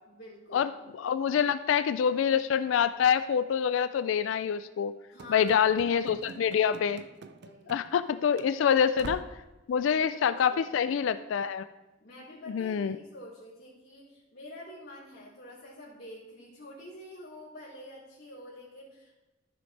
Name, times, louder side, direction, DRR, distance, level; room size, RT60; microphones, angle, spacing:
voice 1, 0.0-0.6 5.1-5.5 6.3-6.6 7.4-7.8 9.7-11.2 12.0-19.1, left 1 dB, 55° left, -13 dB, 3.0 m, -48 dB
voice 2, 1.0-4.9 5.3-7.0 7.7-9.2 9.7-11.6 12.5-13.0, left 7 dB, 75° left, 12 dB, 0.3 m, -26 dB
Run / Slam, 5.2-8.1 8.3-8.5 9.0-9.5, right 3 dB, 55° right, 0.4 m, -46 dB
13.5 x 6.3 x 3.3 m, 1.1 s
head